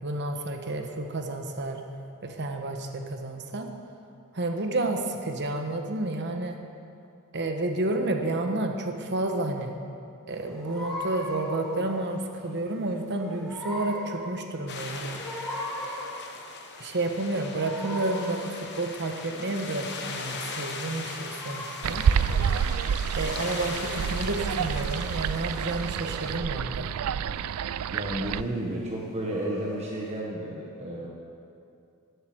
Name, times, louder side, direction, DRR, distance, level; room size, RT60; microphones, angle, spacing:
voice 1, 0.0-1.8 2.2-3.7 4.3-6.6 7.3-9.7 10.3-15.2 16.8-22.0 23.2-27.0, right 2 dB, 50° right, 4 dB, 1.2 m, -30 dB
sound 1, 10.3-30.2, left 1 dB, ahead, 2.5 m, -41 dB
sound 2, 14.7-26.4, left 4 dB, 50° left, 1.2 m, -39 dB
sound 3, 21.8-28.4, right 7 dB, 70° right, 0.3 m, -28 dB
voice 2, 27.9-31.1, right 1 dB, 30° right, -3 dB, 1.3 m, -32 dB
13.5 x 8.1 x 7.9 m, 2.5 s
head